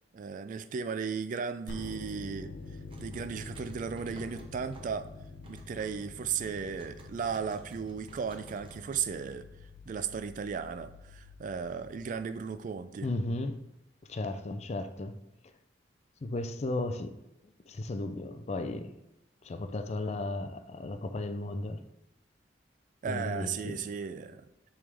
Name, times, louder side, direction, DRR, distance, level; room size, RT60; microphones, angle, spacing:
voice 1, 0.1-2.5 3.0-5.1 5.5-9.5 9.9-13.1 23.0-24.5, right 6 dB, 45° right, 0.3 m, -35 dB
sound 1, 1.7-12.6, left 3 dB, 85° left, 0.5 m, -47 dB
sound 2, 2.6-9.4, right 1 dB, 30° right, 0.8 m, -54 dB
voice 2, 13.0-13.6 14.1-15.2 16.2-17.1 17.7-18.9 19.4-21.8 23.1-23.8, left 2 dB, 35° left, 0.4 m, -35 dB
8.0 x 3.6 x 3.4 m
head